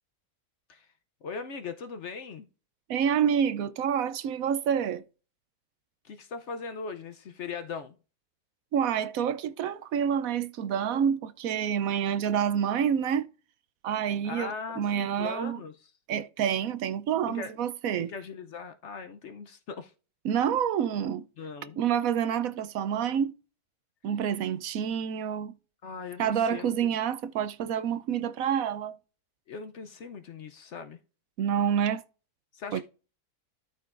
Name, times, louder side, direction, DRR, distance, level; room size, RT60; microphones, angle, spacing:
voice 1, 1.2-2.5 6.0-8.0 14.2-15.7 17.3-17.5 18.0-19.9 21.4-21.8 25.8-26.7 29.5-31.0 32.5-32.8, left 5 dB, 60° left, 0.9 m, -39 dB
voice 2, 2.9-5.0 8.7-13.3 13.8-15.6 16.1-18.1 20.2-21.3 21.8-23.3 24.0-25.5 26.2-29.0 31.4-32.0 32.7-32.8, right 8 dB, 70° right, 1.0 m, -28 dB
13.0 x 5.2 x 2.5 m
omnidirectional pair, 1.6 m